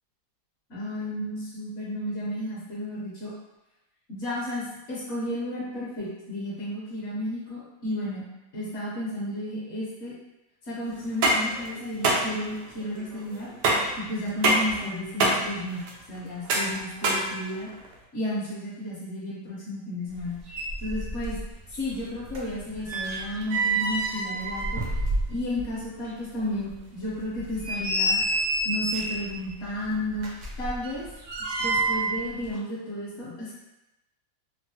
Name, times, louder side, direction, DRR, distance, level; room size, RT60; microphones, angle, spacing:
voice 1, 0.7-3.3 4.1-8.2 8.5-10.1 10.6-13.5 14.0-17.7 18.1-20.4 20.8-21.4 21.7-24.8 25.3-28.2 28.6-30.3 30.6-31.1 31.6-33.5, left 1 dB, 55° left, -8 dB, 1.0 m, -33 dB
sound 1, 11.0-17.9, right 2 dB, 80° right, 1.2 m, -26 dB
sound 2, 20.2-20.3 20.5-21.5 21.7-25.7 26.1-26.2 26.7-26.8 27.4-29.3 30.2-32.2 32.4-32.6, right 2 dB, 65° right, 0.9 m, -28 dB
3.7 x 2.0 x 2.7 m, 0.98 s
omnidirectional pair, 1.7 m